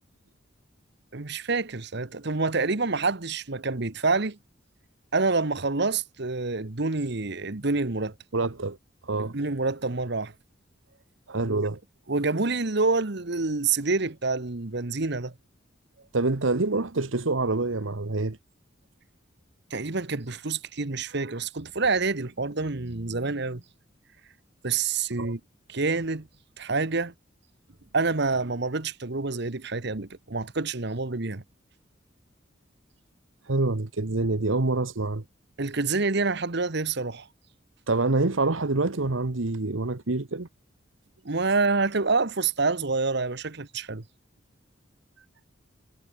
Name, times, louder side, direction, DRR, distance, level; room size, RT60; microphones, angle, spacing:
voice 1, 1.1-4.4 5.1-8.1 9.2-10.3 11.4-11.7 12.1-15.3 19.7-23.6 24.6-25.4 25.7-26.3 26.6-27.1 27.9-31.4 35.6-37.3 41.2-44.0, right 3 dB, 60° right, 1.3 m, -27 dB
voice 2, 8.3-8.8 9.0-9.3 11.3-11.8 16.1-18.4 25.2-25.3 33.4-35.2 37.9-40.5 45.2-45.3, right 2 dB, 80° right, 1.3 m, -26 dB
head